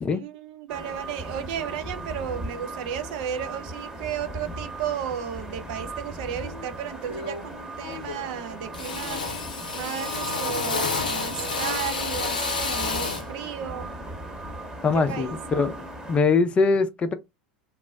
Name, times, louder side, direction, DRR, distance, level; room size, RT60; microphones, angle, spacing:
voice 1, 0.1-9.3 9.7-13.9 14.9-15.4, right 9 dB, 60° right, 0.5 m, -34 dB
sound 1, 0.7-16.2, right 1 dB, 15° right, 0.9 m, -38 dB
Drill, 6.4-6.6 7.1-7.6 7.8-8.4 8.7-13.3, left 3 dB, 85° left, 0.6 m, -30 dB
voice 2, 14.8-17.1, left 4 dB, 25° left, 0.5 m, -22 dB
2.4 x 2.0 x 3.4 m
figure-of-eight pair, 80°, 5 cm